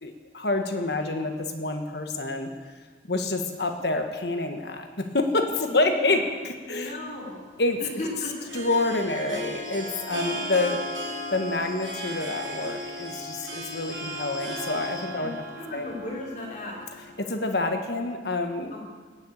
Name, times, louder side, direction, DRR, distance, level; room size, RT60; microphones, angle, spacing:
voice 1, 0.0-2.5 3.1-6.9 7.6-7.8 8.5-10.8 11.3-15.3 15.7-15.9 17.2-18.7, left 2 dB, 60° left, 5 dB, 1.5 m, -27 dB
voice 2, 0.9-1.2 5.6-6.2 6.7-7.4 7.8-8.5 14.1-14.4 15.2-16.8 18.7-18.8, left 1 dB, 40° left, -3 dB, 3.7 m, -37 dB
Harp, 7.1-17.5, equal, 80° right, 2.8 m, -36 dB
sound 1, 9.6-15.1, left 3 dB, 20° left, 1.0 m, -45 dB
18.0 x 6.9 x 8.6 m, 1.5 s
head